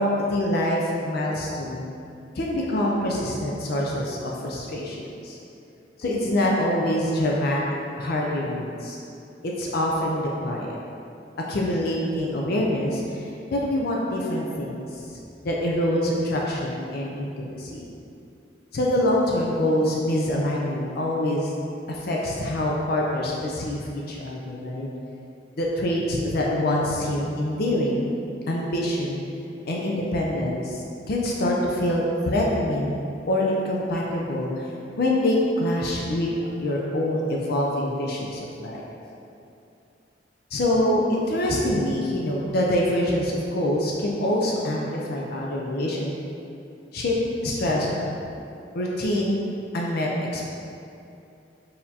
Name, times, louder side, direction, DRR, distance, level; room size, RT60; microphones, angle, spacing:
voice 1, 0.0-1.9 2.4-5.4 6.0-7.6 8.0-9.0 9.4-10.8 11.5-15.0 15.4-17.9 18.7-21.5 21.9-24.9 25.6-28.1 28.5-29.2 29.7-32.9 33.3-34.7 35.0-36.3 36.6-38.8 40.5-46.2 46.9-47.1 47.4-48.1 48.7-50.5, left 1 dB, 55° left, -3 dB, 0.4 m, -25 dB
4.4 x 3.5 x 2.8 m, 2.7 s
head